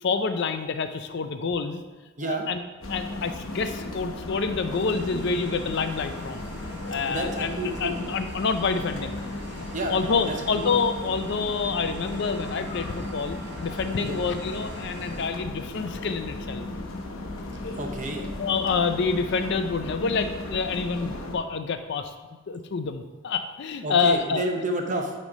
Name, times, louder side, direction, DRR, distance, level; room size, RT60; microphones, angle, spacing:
voice 1, 0.0-1.8 2.2-2.6 2.9-6.5 6.9-9.2 9.6-16.6 18.4-24.5, left 5 dB, 50° left, 8 dB, 0.4 m, -27 dB
sound 1, 2.8-21.4, left 2 dB, 65° left, 0.9 m, -35 dB
sound 2, 4.7-15.3, right 1 dB, 50° right, 1.1 m, -44 dB
voice 2, 7.1-8.0 9.7-10.0 10.2-10.3 14.0-14.2 17.8-18.3 23.8-25.1, right 1 dB, 35° right, 3 dB, 0.8 m, -30 dB
8.6 x 3.1 x 5.3 m, 1.3 s
head